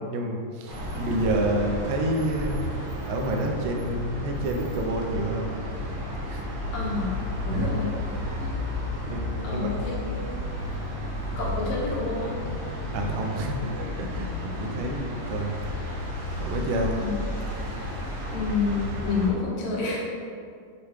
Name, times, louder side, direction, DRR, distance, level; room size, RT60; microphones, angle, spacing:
voice 1, 0.1-2.6 3.1-5.6 6.3-6.4 7.5-7.7 9.1-9.7 12.9-15.5 16.4-16.9, right 1 dB, 90° right, 2 dB, 2.3 m, -29 dB
sound 1, 0.7-19.3, left 1 dB, 55° right, 1.5 m, -32 dB
voice 2, 6.7-7.9 8.4-8.5 9.4-10.1 11.4-12.4 16.9-17.1 18.3-20.0, left 4 dB, 80° left, -5 dB, 2.8 m, -29 dB
7.0 x 3.0 x 4.8 m, 2.3 s
omnidirectional pair, 3.8 m